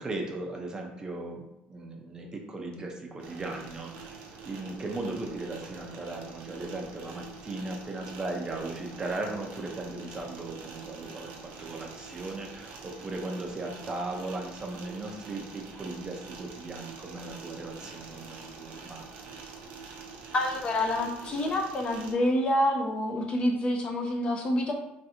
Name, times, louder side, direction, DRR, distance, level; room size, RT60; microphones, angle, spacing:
voice 1, 0.0-19.3, right 2 dB, 20° right, 1 dB, 0.5 m, -37 dB
sound 1, 3.2-22.1, right 4 dB, 85° right, 0.5 m, -45 dB
voice 2, 20.3-24.7, left 1 dB, 30° left, 2 dB, 0.5 m, -27 dB
3.1 x 2.5 x 2.7 m, 0.88 s
cardioid pair, 135°, 3 cm